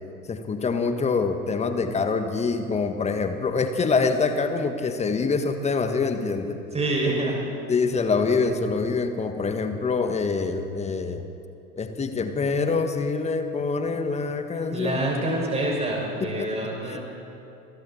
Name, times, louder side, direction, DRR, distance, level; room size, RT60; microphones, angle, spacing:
voice 1, 0.3-6.6 7.7-11.3 11.8-15.0 16.2-17.0, left 4 dB, 15° left, 7 dB, 1.6 m, -25 dB
voice 2, 6.7-7.4 14.7-17.0, right 1 dB, 15° right, -1 dB, 6.3 m, -26 dB
30.0 x 23.0 x 4.3 m, 2.7 s
figure-of-eight pair, 85°, 44 cm